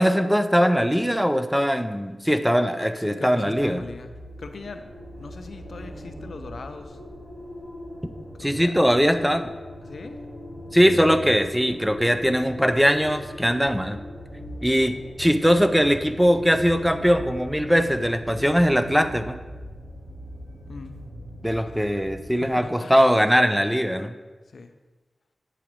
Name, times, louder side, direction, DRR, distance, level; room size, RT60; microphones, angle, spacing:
voice 1, 0.0-3.8 8.4-9.5 10.7-14.0 14.6-19.4 21.4-24.1, equal, 5° right, 9 dB, 0.5 m, -21 dB
voice 2, 3.0-4.1 4.4-7.0 8.4-8.7 9.8-10.2 14.7-14.8 20.7-21.0 21.7-22.0 22.3-23.0 24.5-24.7, left 3 dB, 75° left, 8 dB, 0.4 m, -40 dB
sound 1, 3.5-22.3, equal, 90° right, 2.0 m, -40 dB
8.4 x 4.9 x 3.1 m, 1.2 s
cardioid pair, 45°, 0 cm